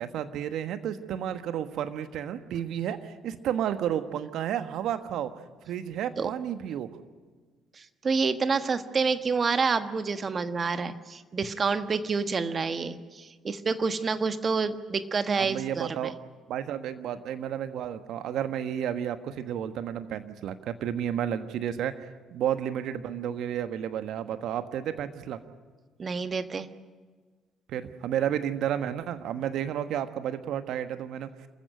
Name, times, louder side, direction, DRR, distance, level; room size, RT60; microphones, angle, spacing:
voice 1, 0.0-5.3 5.7-6.9 15.4-16.2 16.5-21.9 22.3-25.4 27.7-31.3, right 10 dB, 65° right, 10 dB, 1.3 m, -31 dB
voice 2, 8.0-16.1 26.0-26.7, right 4 dB, 40° right, 10 dB, 1.4 m, -28 dB
27.0 x 15.0 x 9.2 m, 1.4 s
hypercardioid pair, 50°, 0 cm